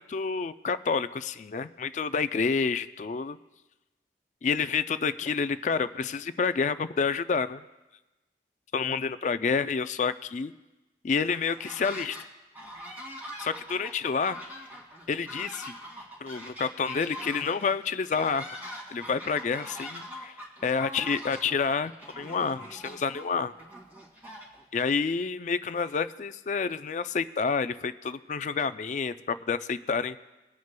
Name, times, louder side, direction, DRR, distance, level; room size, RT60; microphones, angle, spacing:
voice 1, 0.0-3.4 4.4-7.6 8.7-10.5 11.0-12.2 13.4-14.4 15.1-15.7 16.2-18.5 18.9-20.3 20.6-23.5 24.7-30.2, left 5 dB, 40° left, 12 dB, 0.3 m, -29 dB
sound 1, 11.3-12.3 12.5-24.9, equal, 10° right, 2.3 m, -43 dB
22.0 x 9.4 x 2.2 m, 1.1 s
head